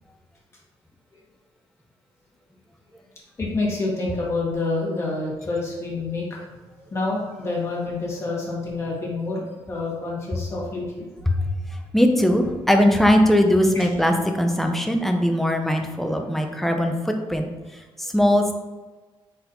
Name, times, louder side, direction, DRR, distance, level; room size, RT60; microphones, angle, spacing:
voice 1, 3.4-6.4 6.9-11.0, left 3 dB, 30° left, -4 dB, 1.3 m, -27 dB
voice 2, 11.9-17.5 18.0-18.6, equal, ahead, 4 dB, 0.4 m, -20 dB
4.3 x 4.0 x 2.6 m, 1.3 s
cardioid pair, 145°, 10 cm